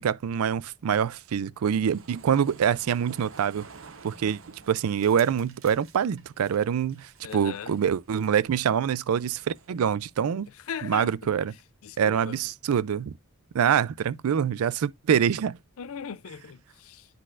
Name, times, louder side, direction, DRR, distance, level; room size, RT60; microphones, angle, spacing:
voice 1, 0.0-3.7 4.0-4.4 4.7-10.5 10.8-11.5 12.0-13.1 13.5-15.6, right 8 dB, 90° right, 0.4 m, -25 dB
sound 1, 1.7-9.9, right 5 dB, 65° right, 0.8 m, -51 dB
voice 2, 7.2-7.7 10.7-11.1 11.8-12.4 15.8-17.1, left 7 dB, 80° left, 0.5 m, -38 dB
10.0 x 4.0 x 2.4 m
head